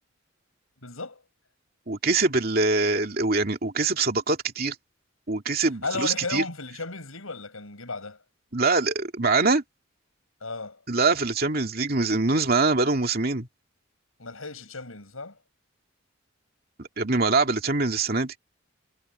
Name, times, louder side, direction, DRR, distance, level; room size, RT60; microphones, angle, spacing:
voice 1, 0.8-1.2 5.8-8.2 10.4-10.8 14.2-15.4, left 3 dB, 90° left, 7.1 m, -35 dB
voice 2, 1.9-4.7 5.3-6.4 8.5-9.6 10.9-13.5 16.8-18.3, right 3 dB, 45° right, 2.6 m, -24 dB
head